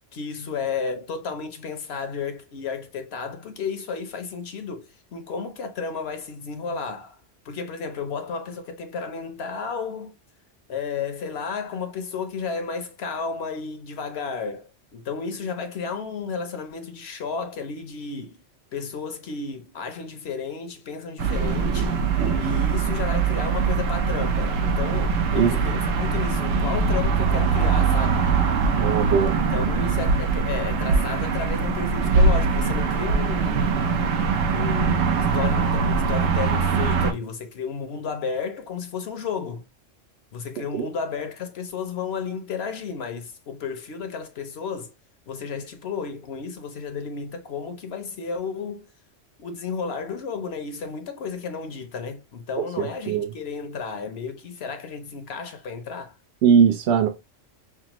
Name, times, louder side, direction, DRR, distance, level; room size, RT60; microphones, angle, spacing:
voice 1, 0.1-10.1 10.7-18.4 18.7-22.0 22.4-28.3 29.5-33.9 34.5-39.6 40.3-44.9 45.3-48.9 49.4-56.2, left 5 dB, 60° left, 0.9 m, -32 dB
sound 1, 21.2-37.1, right 5 dB, 85° right, 1.1 m, -22 dB
voice 2, 28.8-29.3 40.7-40.9 52.6-53.3 56.4-57.1, right 7 dB, 70° right, 0.8 m, -20 dB
5.7 x 2.0 x 2.9 m
omnidirectional pair, 1.3 m